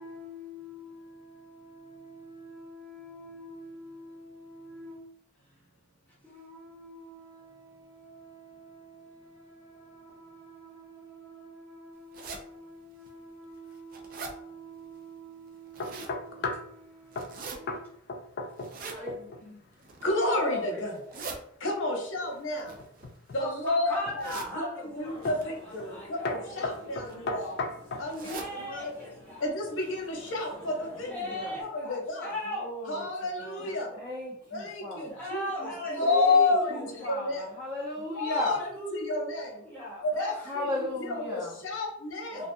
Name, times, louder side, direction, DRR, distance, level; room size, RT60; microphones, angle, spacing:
voice 1, 0.0-5.0 6.2-17.9 18.8-19.5 20.3-20.8 21.1-21.2 21.9-22.1 23.4-27.3 28.2-29.4 31.0-32.7 33.6-33.7 35.1-37.1 38.4-40.6 41.1-41.2 42.3-42.5, equal, 10° left, -7 dB, 0.8 m, -41 dB
sound 1, 12.1-12.4 13.1-13.2 13.6-14.3 15.5-16.2 17.1-17.6 18.6-19.0 19.7-20.2 20.9-21.4 22.5-23.5 24.2-24.5 25.2-25.4 26.4-26.7 27.1-27.2 27.4-27.5 28.1-28.5 28.9-29.0 29.3-29.4 30.0-30.1 30.4-30.5, right 4 dB, 45° right, 0.3 m, -41 dB
sound 2, 15.8-16.7 17.1-17.4 17.7-17.8 18.1-18.8 19.1-19.4 22.8-23.4 24.0-24.5 25.2-25.5 25.8-26.0 26.2-28.1, left 3 dB, 55° left, 0.3 m, -35 dB
voice 2, 20.0-20.9 21.6-22.6 23.3-24.7 24.9-27.5 28.0-28.4 28.7-28.9 29.4-30.7 31.0-31.1 31.6-32.3 32.9-33.9 34.5-35.4 35.9-36.8 37.1-37.4 38.2-38.6 38.9-39.5 40.1-40.7 41.1-42.3, left 2 dB, 75° left, 0 dB, 0.7 m, -30 dB
sound 3, 25.0-31.6, left 1 dB, 70° right, 1.3 m, -51 dB
voice 3, 30.6-31.6 32.4-35.2 36.0-38.6 40.4-41.6, left 1 dB, 25° right, -12 dB, 0.8 m, -36 dB
2.4 x 2.3 x 2.6 m, 0.69 s
head